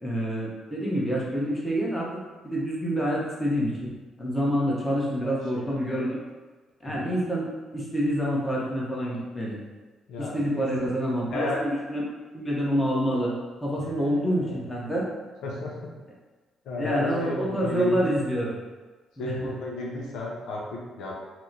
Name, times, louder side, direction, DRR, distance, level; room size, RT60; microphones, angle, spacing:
voice 1, 0.0-2.1 2.4-3.9 4.2-6.2 6.8-7.5 7.7-9.6 10.2-12.0 12.3-13.3 13.6-15.1 16.8-18.5 19.2-19.5, equal, 15° left, -5 dB, 0.9 m, -27 dB
voice 2, 5.2-5.9 6.9-7.0 10.1-11.0 11.3-11.6 13.8-14.7 15.4-15.9 16.6-18.1 19.2-21.1, left 2 dB, 85° left, -2 dB, 0.6 m, -34 dB
2.9 x 2.1 x 3.8 m, 1.3 s
cardioid pair, 90°, 0 cm